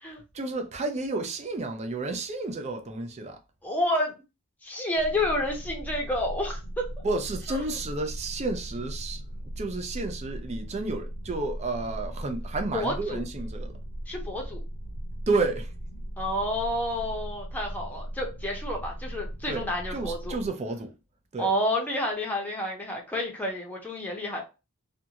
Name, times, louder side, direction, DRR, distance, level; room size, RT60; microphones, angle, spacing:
voice 1, 0.3-3.4 7.0-9.2 9.6-13.8 15.3-15.7 19.5-20.9 21.3-21.5, right 3 dB, 30° right, 0.4 m, -31 dB
voice 2, 3.6-4.1 4.6-6.9 7.5-7.6 12.7-13.2 14.1-14.6 16.2-20.4 21.4-24.4, left 1 dB, 5° left, 0.7 m, -29 dB
sound 1, 5.0-20.5, right 1 dB, 85° left, 0.7 m, -38 dB
2.6 x 2.3 x 2.8 m
head